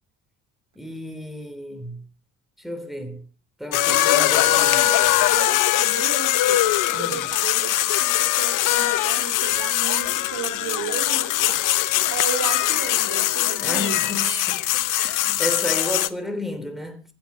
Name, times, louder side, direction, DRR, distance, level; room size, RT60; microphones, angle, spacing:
voice 1, 0.8-2.1 2.6-3.3 3.6-4.7 6.9-7.2 13.6-17.0, left 1 dB, ahead, 3.5 m, -32 dB
sound 1, 3.7-16.1, left 14 dB, 75° left, 1.0 m, -21 dB
voice 2, 3.9-14.1, right 7 dB, 80° right, 3.0 m, -35 dB
26.0 x 9.1 x 5.0 m
cardioid pair, 110°, 31 cm